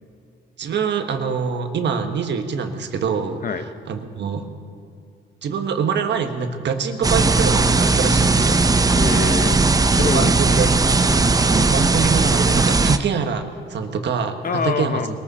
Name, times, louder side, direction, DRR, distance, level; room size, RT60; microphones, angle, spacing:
voice 1, 0.6-4.5 5.4-8.6 10.1-10.7 11.5-15.0, right 6 dB, 60° right, 6 dB, 1.4 m, -25 dB
sound 1, 7.0-13.0, right 3 dB, 20° right, 0.7 m, -17 dB
voice 2, 8.9-10.4 11.1-11.2 14.4-15.1, left 5 dB, 45° left, 10 dB, 0.9 m, -25 dB
21.5 x 14.0 x 4.2 m, 2.5 s
cardioid pair, 90°, 20 cm